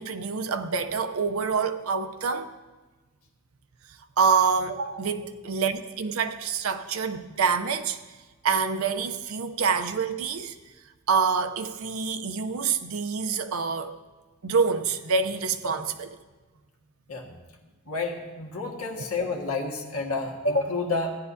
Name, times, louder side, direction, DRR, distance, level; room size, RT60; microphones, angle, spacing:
voice 1, 0.0-2.5 4.2-8.0 8.4-10.5 11.1-14.0 14.4-16.1 19.0-19.1, right 5 dB, 85° right, 0.6 m, -26 dB
voice 2, 17.9-21.2, left 3 dB, 90° left, 1.6 m, -29 dB
16.0 x 10.5 x 2.7 m
head